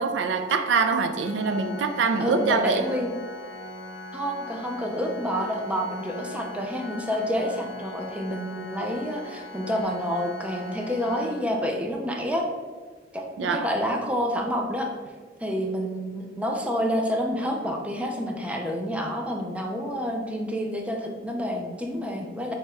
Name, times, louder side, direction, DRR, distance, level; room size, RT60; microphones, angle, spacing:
voice 1, 0.0-2.9 13.4-13.7, right 4 dB, 90° right, 0.4 m, -24 dB
Organ, 1.2-12.0, left 2 dB, 75° left, 0.5 m, -40 dB
voice 2, 2.2-3.1 4.1-12.5 13.1-13.2 13.5-14.9 15.4-22.5, equal, 5° right, 0.4 m, -28 dB
3.5 x 2.9 x 4.3 m
head